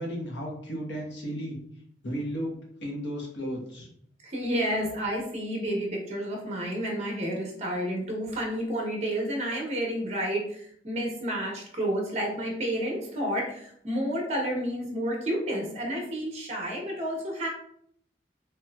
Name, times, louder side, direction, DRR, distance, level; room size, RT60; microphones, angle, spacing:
voice 1, 0.0-1.6 2.0-3.9, equal, 85° left, -1 dB, 1.0 m, -34 dB
voice 2, 4.2-17.5, equal, 40° right, -1 dB, 0.9 m, -30 dB
3.4 x 2.9 x 2.3 m, 0.66 s
head